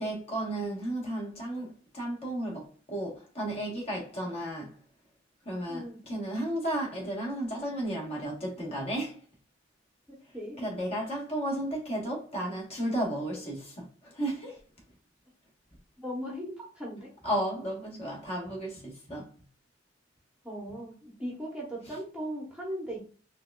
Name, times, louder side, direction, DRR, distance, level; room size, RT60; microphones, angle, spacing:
voice 1, 0.0-1.7 1.9-4.7 5.4-9.2 10.6-14.6 17.2-19.3, right 1 dB, 35° left, 1.2 m, -33 dB
voice 2, 10.1-10.6 16.0-17.1 20.4-23.0, equal, 5° right, 0.9 m, -38 dB
4.6 x 2.3 x 2.2 m
head